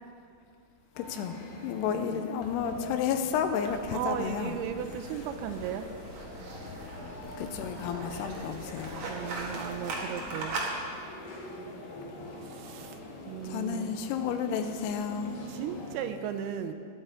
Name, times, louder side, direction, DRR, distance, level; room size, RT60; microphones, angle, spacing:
sound 1, 0.9-16.0, left 2 dB, 60° left, 1.9 m, -44 dB
voice 1, 1.0-4.6 7.4-9.0 13.4-15.4, left 7 dB, 80° left, 7 dB, 2.6 m, -32 dB
voice 2, 1.6-2.2 3.7-6.0 9.0-10.7 12.4-13.0 13.3-14.0 15.5-16.7, right 9 dB, 80° right, 8 dB, 2.4 m, -36 dB
sound 2, 3.6-10.7, right 2 dB, 55° right, 2.4 m, -40 dB
21.0 x 7.0 x 4.4 m, 2.3 s
omnidirectional pair, 5.0 m